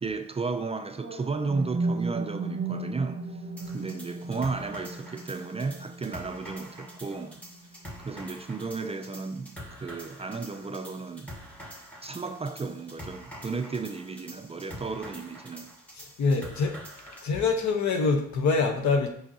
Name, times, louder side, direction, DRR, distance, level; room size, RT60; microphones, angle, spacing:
voice 1, 0.0-3.4 3.7-7.4 8.0-11.3 12.0-15.7, right 4 dB, 20° right, 0.4 m, -34 dB
sound 1, 0.9-8.9, right 3 dB, 35° right, 1.1 m, -36 dB
sound 2, 3.6-17.3, equal, 5° left, 1.4 m, -46 dB
voice 2, 16.0-16.8 17.1-19.1, left 4 dB, 65° left, 1.1 m, -25 dB
6.2 x 5.4 x 2.8 m
cardioid pair, 90°, 30 cm